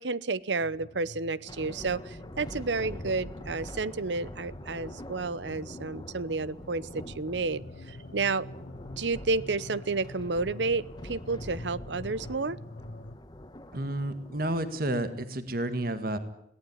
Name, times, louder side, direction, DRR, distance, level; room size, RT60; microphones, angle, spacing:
voice 1, 0.0-8.5 9.0-12.6, right 3 dB, 90° right, 19 dB, 0.9 m, -31 dB
sound 1, 0.6-13.2, left 1 dB, 70° left, 1.9 m, -47 dB
sound 2, 1.5-15.0, left 1 dB, 25° left, 1.6 m, -45 dB
voice 2, 13.7-16.2, right 1 dB, 55° right, 10 dB, 1.9 m, -31 dB
22.0 x 18.0 x 9.6 m, 0.78 s
head